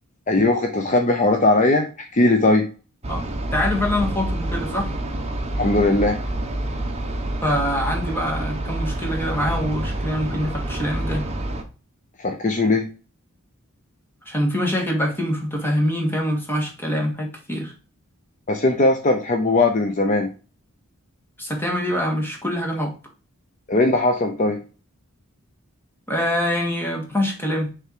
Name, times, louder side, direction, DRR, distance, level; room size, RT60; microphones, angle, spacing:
voice 1, 0.3-2.7 5.6-6.2 12.2-12.8 18.5-20.3 23.7-24.6, left 2 dB, 35° left, 4 dB, 0.7 m, -19 dB
sound 1, 3.0-11.6, right 1 dB, 30° right, 1.0 m, -27 dB
voice 2, 3.5-4.9 7.4-11.3 14.3-17.7 21.4-22.9 26.1-27.7, left 1 dB, 10° left, 0 dB, 1.8 m, -24 dB
6.6 x 3.6 x 4.6 m, 0.34 s
head